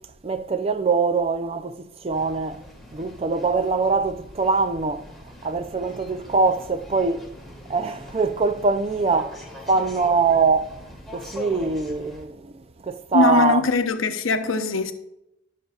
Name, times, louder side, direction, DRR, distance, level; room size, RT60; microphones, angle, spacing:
voice 1, 0.2-2.7 2.9-7.3 7.7-10.9 11.1-13.6, right 4 dB, 30° right, 0.5 m, -23 dB
sound 1, 2.1-12.2, left 1 dB, ahead, 1.7 m, -42 dB
voice 2, 13.1-14.9, left 4 dB, 90° left, 0.8 m, -21 dB
19.0 x 6.6 x 2.4 m
head